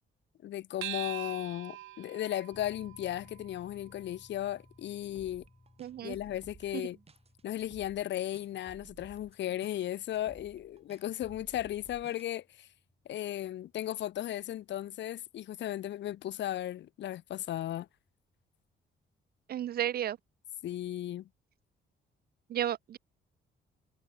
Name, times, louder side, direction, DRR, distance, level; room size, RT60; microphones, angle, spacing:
voice 1, 0.4-5.4 6.0-7.0 7.4-12.7 13.1-17.9 20.6-21.3, left 12 dB, 65° left, 0.7 m, -36 dB
sound 1, 0.8-5.6, right 16 dB, 85° right, 0.7 m, -45 dB
sound 2, 2.5-16.9, left 2 dB, 15° left, 4.5 m, -63 dB
sound 3, 5.0-12.3, right 5 dB, 30° right, 1.2 m, -56 dB
voice 2, 5.8-6.2 6.7-6.8 19.5-20.2 22.5-23.0, right 11 dB, 50° right, 0.4 m, -33 dB
cardioid pair, 90°, 20 cm